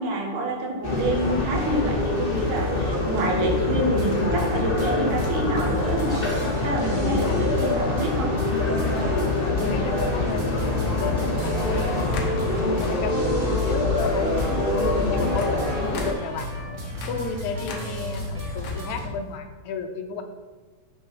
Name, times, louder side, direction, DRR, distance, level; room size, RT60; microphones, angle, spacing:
voice 1, 0.0-6.2 6.6-8.3, right 1 dB, 90° right, 0 dB, 3.1 m, -27 dB
sound 1, 0.8-16.1, left 2 dB, 40° left, 0.8 m, -25 dB
sound 2, 0.8-19.1, equal, 60° right, 0.7 m, -34 dB
voice 2, 7.0-7.4 9.3-16.5 17.1-20.2, left 4 dB, 80° left, 6 dB, 2.1 m, -33 dB
sound 3, 7.8-8.0 9.0-9.1 11.4-11.8 12.1-13.2 13.7-14.0 14.4-19.3, left 4 dB, 60° left, 1.9 m, -43 dB
7.5 x 6.5 x 5.9 m, 1.3 s
omnidirectional pair, 3.5 m